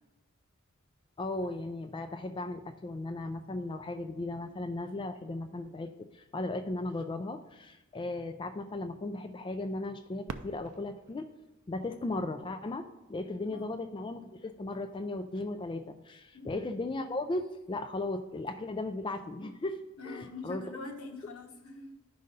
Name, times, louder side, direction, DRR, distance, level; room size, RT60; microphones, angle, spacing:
voice 1, 1.2-11.3 11.7-20.6, left 2 dB, 20° left, 7 dB, 0.3 m, -36 dB
Fireworks, 10.2-13.0 13.7-13.8 14.5-14.9 16.8-17.0, right 4 dB, 85° right, 0.5 m, -47 dB
voice 2, 16.3-16.7 20.0-21.9, left 3 dB, 80° left, 3 dB, 1.2 m, -44 dB
11.5 x 5.4 x 3.9 m, 1.1 s
head